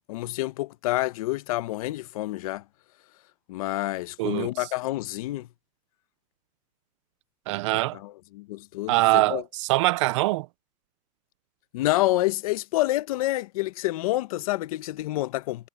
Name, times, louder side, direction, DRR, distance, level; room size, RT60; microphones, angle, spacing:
voice 1, 0.0-2.6 3.5-5.5 7.7-9.4 11.7-15.7, left 17 dB, 60° left, 0.9 m, -28 dB
voice 2, 4.2-4.5 7.5-8.0 8.9-10.5, right 20 dB, 45° right, 0.5 m, -23 dB
supercardioid pair, 175°, 21 cm